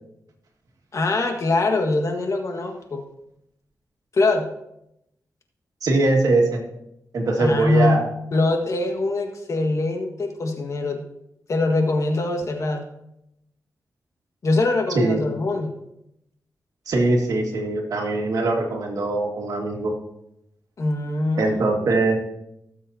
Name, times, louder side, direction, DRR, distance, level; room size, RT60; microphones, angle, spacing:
voice 1, 0.9-3.0 4.1-4.5 7.4-8.0 8.3-11.0 11.5-12.8 14.4-15.7 20.8-21.9, left 2 dB, 60° left, 3 dB, 1.6 m, -23 dB
voice 2, 5.8-6.6 7.1-8.0 15.0-15.2 16.9-19.9 21.4-22.3, right 2 dB, 85° right, 1 dB, 2.0 m, -21 dB
17.5 x 7.2 x 2.8 m, 0.82 s
wide cardioid pair, 95°, 6 cm